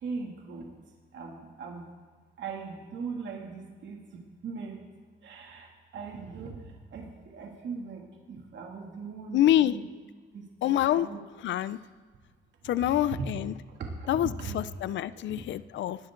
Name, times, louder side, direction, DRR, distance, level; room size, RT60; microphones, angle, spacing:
voice 1, 0.0-0.7 1.1-1.9 2.4-4.8 5.2-6.6 6.9-8.0 8.3-9.8 10.3-11.2 12.6-13.3 13.8-14.6 15.3-15.4, right 5 dB, 65° right, 0 dB, 2.5 m, -39 dB
voice 2, 9.3-9.7 10.6-11.1 11.4-11.8 12.6-13.5 14.1-16.0, left 12 dB, 70° left, 16 dB, 0.5 m, -26 dB
20.5 x 11.0 x 3.8 m, 1.5 s
cardioid pair, 90°, 20 cm